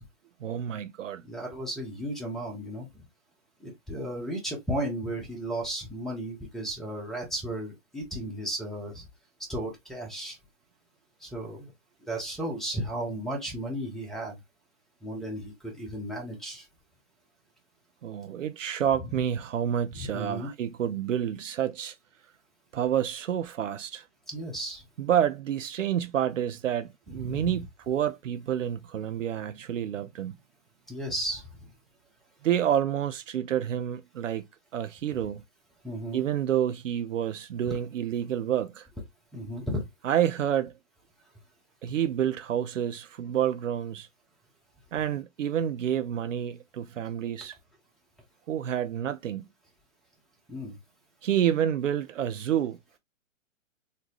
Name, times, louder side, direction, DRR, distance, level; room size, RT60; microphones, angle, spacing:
voice 1, 0.4-1.2 18.0-22.0 22.7-24.1 25.0-30.3 32.4-34.5 34.7-35.4 36.1-38.9 40.0-40.7 41.8-44.1 44.9-47.6 48.5-49.5 51.2-52.8, right 10 dB, 70° right, 0.5 m, -29 dB
voice 2, 1.2-2.9 3.6-9.0 9.5-10.4 11.2-11.7 12.0-14.4 15.0-16.7 19.9-20.5 24.3-24.8 27.2-27.6 30.9-31.4 35.8-36.2 37.7-37.8 39.3-39.8 50.5-50.8, right 1 dB, ahead, 0.7 m, -34 dB
3.9 x 2.2 x 3.0 m
figure-of-eight pair, 120°, 40 cm